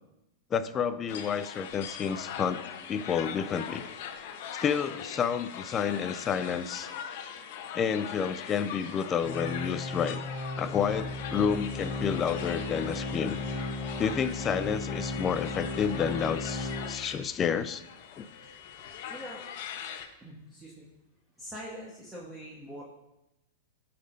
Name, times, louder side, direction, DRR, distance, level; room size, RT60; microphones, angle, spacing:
voice 1, 0.5-2.6 2.9-3.8 4.5-6.9 7.7-10.2 10.6-13.4 14.0-17.8 18.2-18.3, left 7 dB, 25° left, 13 dB, 0.5 m, -30 dB
sound 1, 1.1-20.1, left 8 dB, 55° left, 1.0 m, -41 dB
Organ, 9.2-17.3 17.7-17.8 18.4-18.5, left 2 dB, 25° right, 3.5 m, -36 dB
voice 2, 19.1-19.4 20.2-20.9 21.4-22.8, equal, 5° right, -4 dB, 1.5 m, -43 dB
12.5 x 4.3 x 5.1 m, 0.93 s
hypercardioid pair, 135°, 0 cm